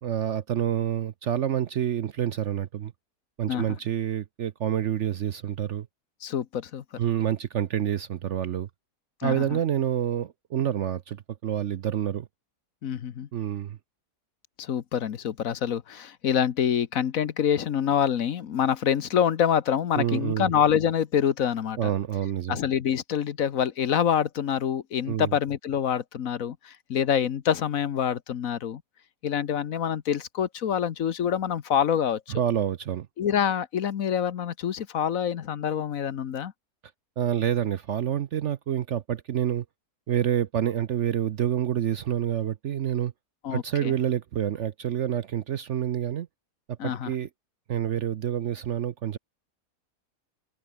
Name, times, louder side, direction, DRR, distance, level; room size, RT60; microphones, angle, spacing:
voice 1, 0.0-2.9 3.4-5.9 7.0-8.7 9.2-12.3 13.3-13.8 19.9-20.5 21.8-22.6 25.1-25.3 32.3-33.1 37.2-39.6 40.1-43.1 43.5-46.3 46.7-47.3 47.7-49.2, right 10 dB, 60° right, 0.8 m, -28 dB
voice 2, 6.2-6.8 9.2-9.6 12.8-13.3 14.6-21.9 22.5-28.8 29.2-32.2 33.2-36.5 43.4-43.9 46.8-47.1, left 8 dB, 60° left, 1.3 m, -26 dB
omnidirectional pair, 1.7 m